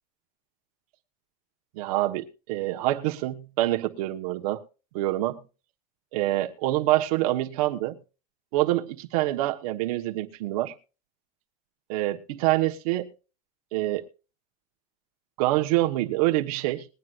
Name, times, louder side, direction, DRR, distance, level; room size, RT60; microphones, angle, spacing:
voice 1, 1.7-4.6 4.9-5.4 6.1-8.0 8.5-10.7 11.9-13.1 13.7-14.0 15.4-16.9, right 16 dB, 80° right, 1.4 m, -26 dB
21.0 x 9.5 x 2.5 m
cardioid pair, 160°, 19 cm